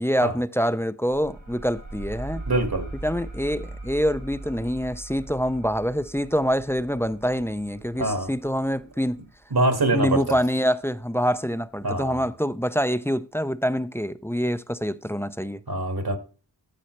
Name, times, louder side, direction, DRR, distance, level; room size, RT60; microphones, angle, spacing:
voice 1, 0.0-2.4 3.0-9.2 9.9-15.6, equal, 5° left, 0.5 m, -25 dB
sound 1, 1.1-10.3, right 2 dB, 90° right, 3.9 m, -40 dB
voice 2, 2.5-2.9 8.0-8.3 9.5-10.4 11.8-12.2 15.7-16.2, right 2 dB, 60° right, 2.0 m, -24 dB
13.0 x 5.5 x 3.2 m
wide cardioid pair, 70°, 43 cm